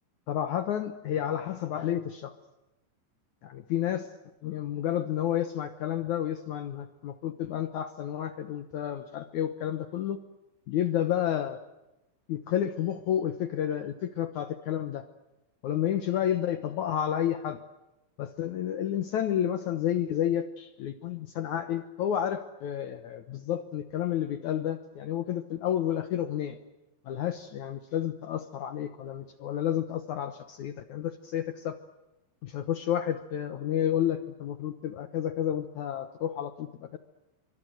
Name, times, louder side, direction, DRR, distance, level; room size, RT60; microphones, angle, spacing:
voice 1, 0.3-2.4 3.4-4.1 4.4-10.2 10.7-11.6 12.3-15.1 15.6-17.6 18.2-26.6 27.0-31.8 32.4-37.0, left 10 dB, 90° left, 9 dB, 1.6 m, -30 dB
26.5 x 24.5 x 7.8 m, 0.98 s
omnidirectional pair, 5.1 m